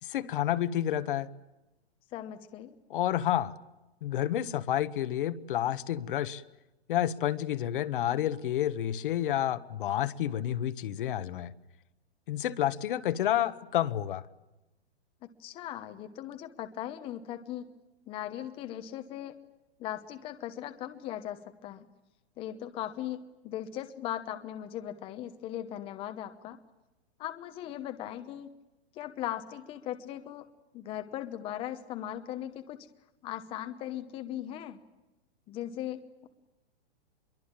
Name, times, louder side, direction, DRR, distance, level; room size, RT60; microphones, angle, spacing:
voice 1, 0.0-1.3 2.9-3.5 4.0-6.4 6.9-11.5 12.3-14.2, left 11 dB, 50° left, 12 dB, 1.4 m, -29 dB
voice 2, 2.1-2.8 15.2-17.7 18.1-19.4 19.8-21.9 22.4-26.6 27.2-28.5 28.9-30.5 30.7-32.9 33.2-34.8 35.5-36.3, left 12 dB, 15° left, 8 dB, 1.0 m, -38 dB
25.5 x 23.0 x 8.9 m, 1.0 s
hypercardioid pair, 165°, 33 cm